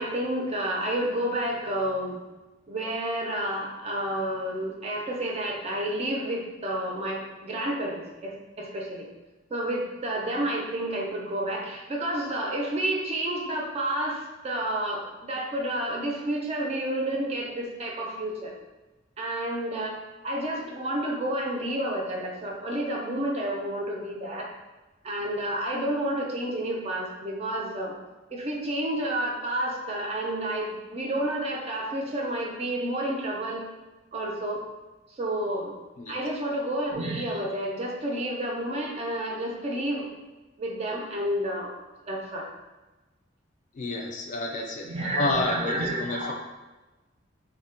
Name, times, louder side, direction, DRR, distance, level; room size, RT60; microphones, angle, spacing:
voice 1, 0.0-2.2 2.7-9.1 9.5-18.5 19.2-20.0 20.2-24.5 25.0-27.9 28.3-33.6 34.1-34.6 35.2-35.7 36.1-40.1 40.6-41.7 42.1-42.5 44.8-46.3, right 1 dB, 35° right, -1 dB, 0.4 m, -30 dB
voice 2, 43.7-44.9 45.2-46.3, left 2 dB, 40° left, 2 dB, 0.3 m, -29 dB
2.2 x 2.1 x 3.7 m, 1.2 s
head